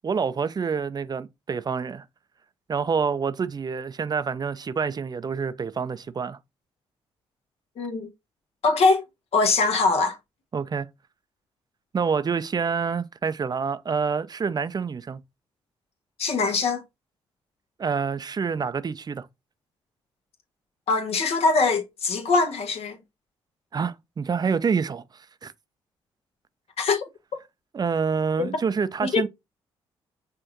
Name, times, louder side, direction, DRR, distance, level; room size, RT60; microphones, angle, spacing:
voice 1, 0.0-2.0 2.7-6.4 10.5-10.9 11.9-15.2 17.8-19.3 23.7-25.0 25.4-25.5 27.7-29.3, right 5 dB, 35° right, 0.5 m, -27 dB
voice 2, 7.8-8.1 8.6-9.0 9.3-10.2 16.2-16.8 20.9-23.0 26.8-27.0 28.4-28.5 29.0-29.3, left 4 dB, 65° left, 1.2 m, -22 dB
5.7 x 2.6 x 3.0 m
supercardioid pair, 55°, 11 cm